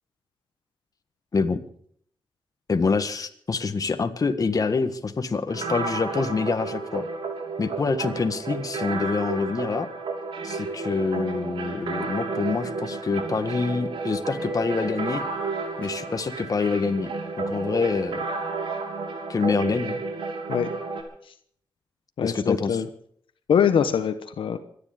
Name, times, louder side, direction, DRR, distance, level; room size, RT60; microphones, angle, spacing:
voice 1, 2.7-7.0 7.6-9.9 10.4-15.2 15.8-17.1 17.4-18.2 19.3-20.0 22.2-22.8, left 4 dB, 45° left, 8 dB, 1.6 m, -26 dB
sound 1, 5.5-21.0, right 3 dB, 90° right, 3.2 m, -32 dB
sound 2, 13.2-18.0, left 1 dB, 15° left, 5.2 m, -51 dB
voice 2, 22.2-22.9 23.5-24.6, left 7 dB, 85° left, 9 dB, 1.1 m, -23 dB
25.0 x 10.5 x 5.2 m, 0.64 s
cardioid pair, 90°, 9 cm